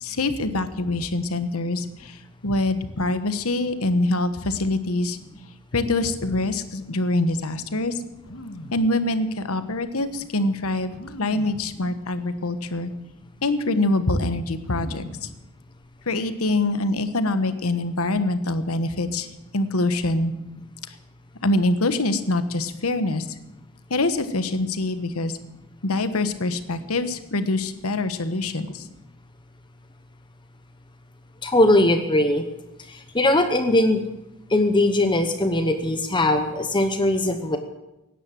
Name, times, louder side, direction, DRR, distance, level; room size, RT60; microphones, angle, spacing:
voice 1, 0.0-2.2 2.4-5.2 5.7-8.0 8.7-10.9 11.2-12.9 13.4-15.3 16.1-19.3 19.5-20.3 21.4-23.3 23.9-25.3 25.8-28.8, left 2 dB, 85° left, 10 dB, 1.2 m, -24 dB
sound 1, 8.2-8.9 9.8-9.9 10.9-11.7 12.5-12.6 13.0-13.5 14.6-15.4 15.7-16.3, equal, 65° left, 1.8 m, -40 dB
voice 2, 31.4-32.4 33.1-34.0 34.5-37.6, left 1 dB, 20° left, 7 dB, 0.9 m, -20 dB
17.0 x 10.0 x 7.6 m, 0.96 s
head